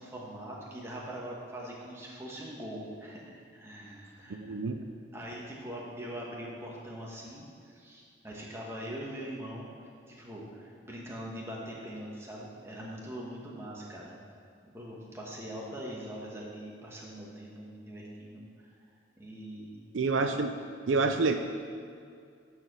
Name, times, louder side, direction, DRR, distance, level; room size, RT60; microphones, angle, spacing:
voice 1, 0.0-4.6 5.1-9.7 10.1-14.4 14.7-18.7 19.2-19.8, equal, 15° right, -4 dB, 1.3 m, -42 dB
voice 2, 4.3-4.8 19.9-20.5 20.9-21.4, right 3 dB, 80° right, 6 dB, 0.5 m, -27 dB
9.4 x 4.7 x 6.1 m, 2.3 s
head